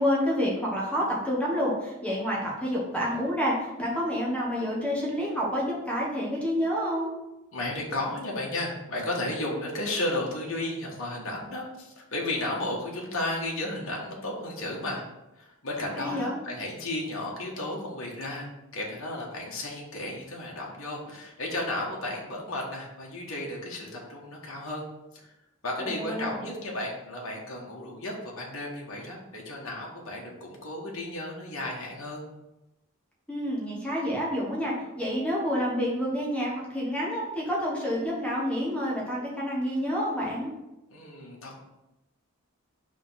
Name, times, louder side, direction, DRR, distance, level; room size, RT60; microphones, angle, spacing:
voice 1, 0.0-7.1 16.0-16.4 25.8-26.4 33.3-40.5, equal, 5° left, -4 dB, 1.4 m, -28 dB
voice 2, 7.5-15.1 15.3-24.8 25.1-25.3 25.6-32.3 40.9-41.6, left 1 dB, 65° left, -3 dB, 1.4 m, -33 dB
5.0 x 3.6 x 5.7 m, 0.94 s
head